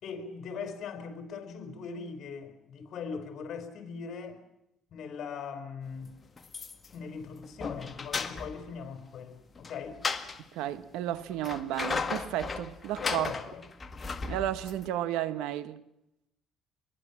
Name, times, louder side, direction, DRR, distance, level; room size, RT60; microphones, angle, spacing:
voice 1, 0.0-4.4 4.9-6.1 6.9-10.0 13.0-13.6, left 5 dB, 55° left, 4.9 m, -40 dB
sound 1, 6.4-7.0 7.4-8.7 9.6-10.4 11.2-14.8, left 4 dB, 25° left, 1.8 m, -35 dB
voice 2, 10.5-13.3 14.3-15.8, right 12 dB, 85° right, 1.3 m, -33 dB
26.5 x 22.5 x 7.4 m
cardioid pair, 120°, 0 cm